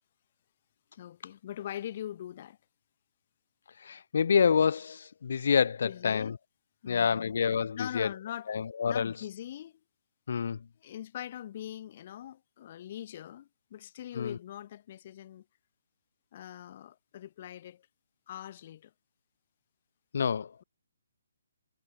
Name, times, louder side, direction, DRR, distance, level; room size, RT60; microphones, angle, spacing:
voice 1, 1.0-2.6 5.8-6.3 6.8-7.3 7.8-8.5 8.9-9.7 10.8-15.4 16.3-17.8 18.3-18.9, left 11 dB, 25° left, 1.7 m, -42 dB
voice 2, 3.8-6.4 6.9-8.1 8.5-9.1 10.3-10.6 14.1-14.4 20.1-20.5, left 6 dB, 45° left, 1.4 m, -27 dB
hypercardioid pair, 175°, 0 cm